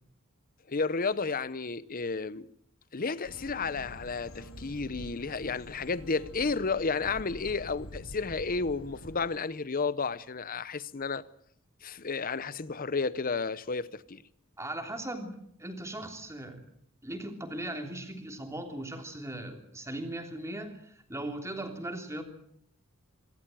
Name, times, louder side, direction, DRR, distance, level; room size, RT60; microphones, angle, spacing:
voice 1, 0.7-2.5 2.9-11.2 11.8-14.2, left 4 dB, 40° left, 0.8 m, -32 dB
sound 1, 3.2-9.2, equal, 85° left, 5.7 m, -46 dB
voice 2, 14.6-16.6 17.0-22.2, right 1 dB, 15° right, 3.3 m, -38 dB
25.5 x 13.5 x 9.1 m
head